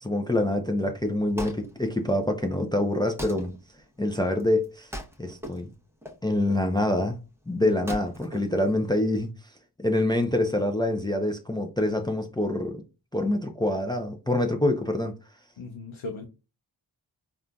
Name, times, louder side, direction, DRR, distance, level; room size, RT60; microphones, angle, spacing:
voice 1, 0.0-3.5 4.0-4.9 5.2-5.7 6.2-7.2 7.5-9.3 9.8-12.8 13.1-15.1, left 1 dB, 10° left, 0.4 m, -26 dB
Wood, 0.9-9.3, equal, 5° right, 0.8 m, -43 dB
voice 2, 15.6-16.3, left 3 dB, 85° left, 0.6 m, -37 dB
3.7 x 2.4 x 2.2 m
cardioid pair, 45°, 46 cm